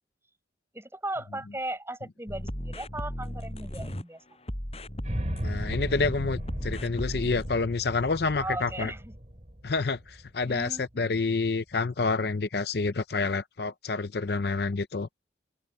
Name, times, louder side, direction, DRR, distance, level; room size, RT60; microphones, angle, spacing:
voice 1, 0.7-4.2 8.4-9.1 10.4-11.2, right 1 dB, 15° right, 6.2 m, -37 dB
sound 1, 2.3-4.0 4.4-7.5, equal, 35° left, 6.7 m, -36 dB
sound 2, 5.0-11.2, equal, 40° right, 2.6 m, -37 dB
voice 2, 5.4-8.9 9.6-15.1, left 4 dB, 60° left, 0.6 m, -28 dB
open air
head